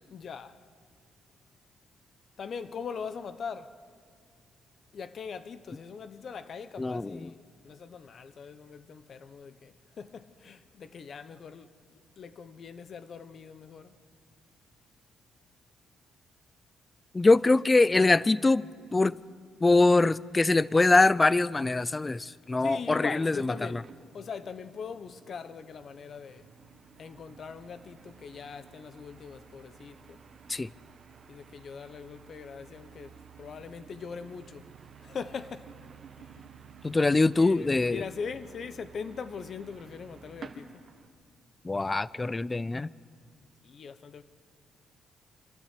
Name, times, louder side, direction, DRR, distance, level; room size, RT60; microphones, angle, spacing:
voice 1, 0.1-0.6 2.4-3.7 4.9-13.9 22.6-23.9 24.1-26.4 27.0-30.2 31.3-33.1 33.4-34.6 35.0-35.7 37.4-40.8 43.6-44.2, left 6 dB, 50° left, 0.9 m, -41 dB
voice 2, 6.8-7.3 17.1-19.2 19.6-23.8 30.5-30.7 36.8-38.0 41.6-42.9, left 3 dB, 20° left, 0.4 m, -23 dB
sound 1, 23.5-41.1, right 5 dB, 50° right, 1.5 m, -52 dB
25.5 x 12.5 x 8.3 m
cardioid pair, 90°, 0 cm